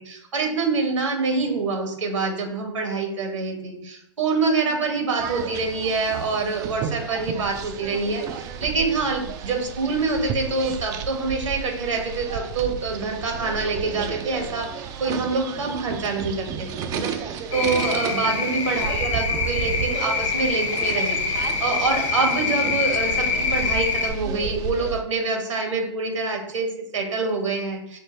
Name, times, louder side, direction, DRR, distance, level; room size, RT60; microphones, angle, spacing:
voice 1, 0.0-28.0, right 4 dB, 80° right, 3 dB, 1.3 m, -26 dB
sound 1, 5.2-25.0, right 6 dB, 25° right, 0.3 m, -33 dB
sound 2, 17.5-24.1, left 5 dB, 75° left, 0.9 m, -25 dB
5.8 x 2.1 x 3.3 m, 0.72 s
hypercardioid pair, 125°, 16 cm